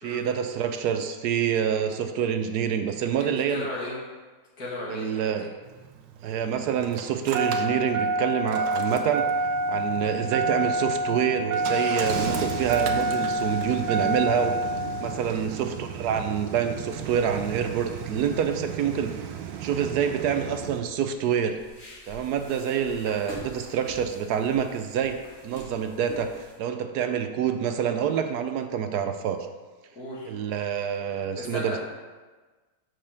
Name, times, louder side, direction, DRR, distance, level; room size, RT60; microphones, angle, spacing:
voice 1, 0.0-3.7 4.9-5.5 6.2-9.3 9.7-14.6 15.0-19.2 19.6-21.6 22.1-25.2 25.4-29.4 30.3-31.8, right 8 dB, 70° right, 7 dB, 1.0 m, -27 dB
voice 2, 3.2-4.0 4.6-5.5 15.2-15.4 30.0-30.3 31.3-31.8, left 1 dB, 55° left, -6 dB, 2.6 m, -35 dB
Engine starting, 5.7-20.8, right 2 dB, 90° right, 1.4 m, -29 dB
sound 1, 21.0-26.6, left 1 dB, 35° left, 2.2 m, -45 dB
5.9 x 5.5 x 6.5 m, 1.3 s
omnidirectional pair, 1.9 m